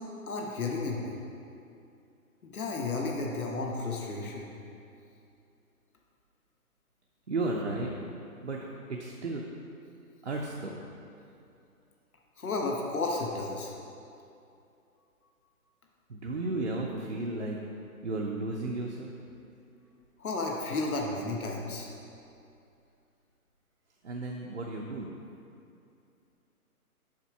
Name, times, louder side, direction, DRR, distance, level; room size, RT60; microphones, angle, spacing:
voice 1, 0.3-1.2 2.5-4.5 12.4-13.8 20.2-21.9, left 3 dB, 70° left, 0 dB, 1.3 m, -32 dB
voice 2, 7.3-7.9 8.4-8.6 8.9-9.4 10.2-10.8 16.1-17.6 18.0-19.1 24.0-25.1, right 2 dB, 50° right, -2 dB, 0.6 m, -33 dB
7.2 x 5.0 x 4.7 m, 2.6 s
hypercardioid pair, 175°, 45 cm